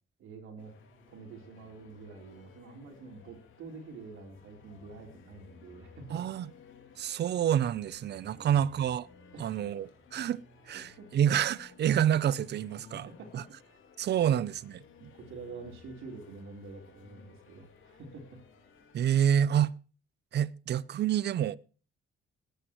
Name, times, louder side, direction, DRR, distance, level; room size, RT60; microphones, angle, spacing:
voice 1, 0.2-0.8 1.1-6.2 8.3-8.6 9.3-9.6 11.0-11.1 12.9-13.8 14.2-14.4 15.1-18.4, right 4 dB, 80° right, 3.9 m, -47 dB
sound 1, 0.6-19.2, left 5 dB, 85° left, 2.7 m, -57 dB
voice 2, 6.1-6.5 7.0-9.1 9.4-13.1 13.3-13.4 14.0-14.5 15.0-15.1 18.9-19.7 20.3-21.6, right 10 dB, 60° right, 0.6 m, -28 dB
20.5 x 10.0 x 3.1 m
cardioid pair, 90°, 20 cm